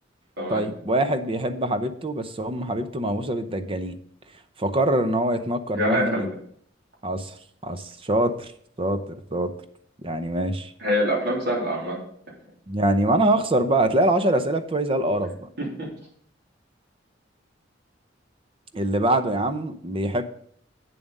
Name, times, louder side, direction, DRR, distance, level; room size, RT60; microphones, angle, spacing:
voice 1, 0.5-4.0 4.6-6.3 7.0-7.3 7.6-8.5 8.8-9.5 10.0-10.7 12.7-15.3 18.7-20.2, right 1 dB, 30° right, 9 dB, 0.7 m, -24 dB
voice 2, 5.7-6.2 10.8-12.0 15.6-15.9, equal, 60° right, -2 dB, 3.4 m, -25 dB
8.5 x 7.3 x 5.3 m, 0.63 s
head